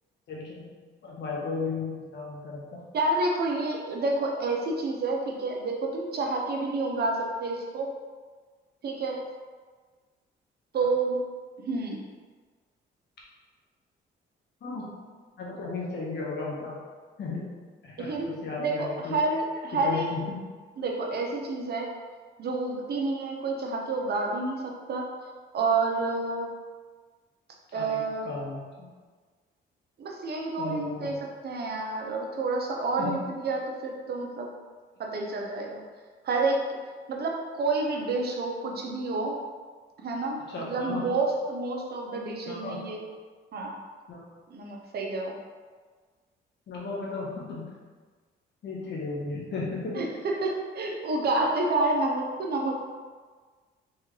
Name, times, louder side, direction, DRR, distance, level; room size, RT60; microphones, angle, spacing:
voice 1, 0.3-0.7 1.0-2.8 14.6-14.9 15.4-16.8 17.2-17.4 17.8-19.2 19.7-20.4 27.7-28.0 28.2-28.9 30.6-31.2 33.0-33.2 40.5-41.0 42.5-42.9 44.1-44.2 46.7-47.7 48.6-50.0, left 3 dB, 65° left, -4 dB, 1.3 m, -35 dB
voice 2, 2.9-7.9 8.8-9.2 10.7-11.2 11.7-12.0 18.0-18.3 18.6-20.1 20.8-21.9 22.4-25.1 25.5-26.5 27.7-28.3 30.0-34.5 35.0-35.8 36.2-36.7 37.1-39.4 40.0-43.0 43.5-43.8 44.5-45.4 49.9-52.8, right 3 dB, 55° right, 0 dB, 0.9 m, -29 dB
4.5 x 3.4 x 3.2 m, 1.5 s
cardioid pair, 90°, 20 cm